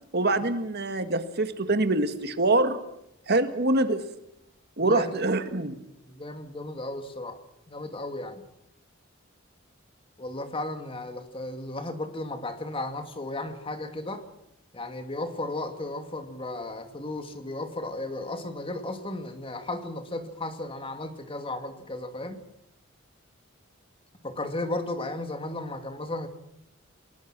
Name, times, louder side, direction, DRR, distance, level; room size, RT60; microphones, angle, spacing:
voice 1, 0.1-2.8 3.3-4.0 4.8-5.8, right 2 dB, 55° right, 9 dB, 1.9 m, -25 dB
voice 2, 4.8-5.1 6.0-7.4 7.7-8.4 10.2-14.2 14.7-22.4 24.2-26.3, left 2 dB, 25° left, 7 dB, 2.3 m, -34 dB
29.0 x 19.5 x 6.2 m, 0.81 s
head